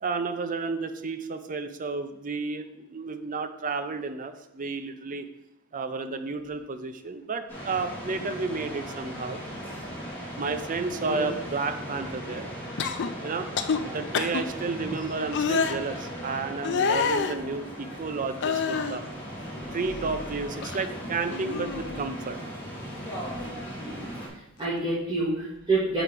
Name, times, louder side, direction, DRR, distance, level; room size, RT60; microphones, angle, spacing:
voice 1, 0.0-5.3 5.7-9.4 10.4-12.4 13.2-13.5 13.8-19.0 19.7-22.4, right 4 dB, 40° right, 9 dB, 0.5 m, -32 dB
sound 1, 7.5-24.3, equal, 10° left, 2.4 m, -38 dB
sound 2, 12.8-13.1 13.5-13.8 14.1-14.4 15.3-15.7 16.6-17.3 18.4-19.0 19.5-20.3 20.6-20.9 21.3-22.1 23.3-23.5, left 6 dB, 55° left, 0.4 m, -28 dB
voice 2, 23.8-24.1 24.6-26.0, right 2 dB, 20° right, -9 dB, 1.8 m, -28 dB
5.0 x 4.7 x 5.8 m, 0.89 s
head